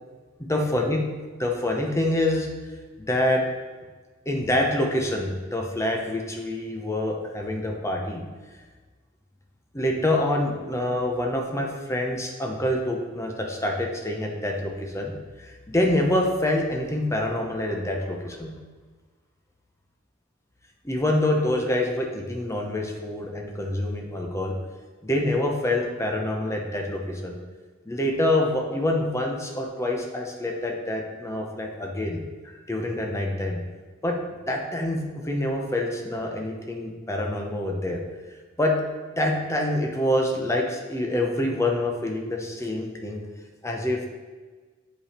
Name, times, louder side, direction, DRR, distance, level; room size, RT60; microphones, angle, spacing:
voice 1, 0.5-1.0 1.4-2.5 3.1-3.4 4.3-8.2 9.7-15.1 15.4-18.5 20.8-24.5 25.0-27.4 27.9-33.6 34.0-34.2 34.5-38.0 38.6-38.8 39.2-43.2 43.6-44.1, left 1 dB, 15° left, 1 dB, 0.9 m, -26 dB
7.6 x 5.2 x 4.4 m, 1.4 s
head